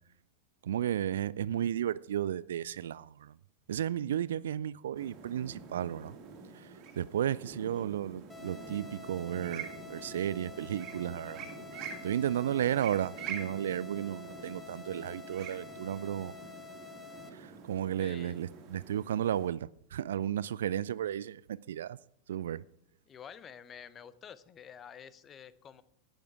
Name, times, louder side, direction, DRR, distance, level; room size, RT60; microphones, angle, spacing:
voice 1, 0.6-3.4 3.7-6.2 6.5-11.5 12.0-16.3 17.3-22.0 22.3-22.6, right 10 dB, 60° right, 0.3 m, -33 dB
sound 1, 4.9-19.5, right 5 dB, 40° right, 2.3 m, -46 dB
sound 2, 8.3-17.3, left 6 dB, 10° left, 1.0 m, -49 dB
voice 2, 18.0-18.4 23.1-25.8, left 8 dB, 25° left, 0.6 m, -49 dB
11.5 x 9.4 x 4.7 m
figure-of-eight pair, 90°, 0 cm